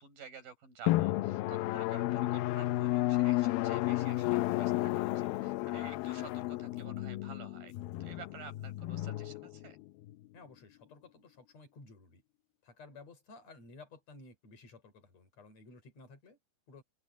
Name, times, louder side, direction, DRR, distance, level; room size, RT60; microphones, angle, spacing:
voice 1, 0.0-7.7 8.0-9.8, right 6 dB, 70° right, 6.9 m, -51 dB
Drum, 0.9-10.1, left 17 dB, 85° left, 2.6 m, -32 dB
voice 2, 10.3-12.2 12.6-16.4 16.7-16.8, left 3 dB, 45° left, 6.0 m, -54 dB
omnidirectional pair, 4.2 m